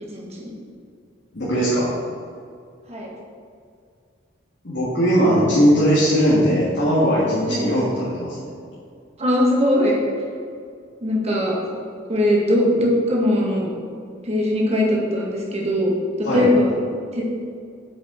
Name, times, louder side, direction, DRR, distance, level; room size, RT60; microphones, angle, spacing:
voice 1, 0.1-0.5 2.9-3.1 7.5-7.7 9.2-10.0 11.0-11.6 12.1-13.7 14.2-15.9 16.2-16.7 17.1-17.2, left 1 dB, 35° right, -3 dB, 1.9 m, -20 dB
voice 2, 1.3-1.9 4.6-8.5 16.2-16.5, equal, 65° left, -8 dB, 2.0 m, -19 dB
8.6 x 6.9 x 4.0 m, 2.2 s
head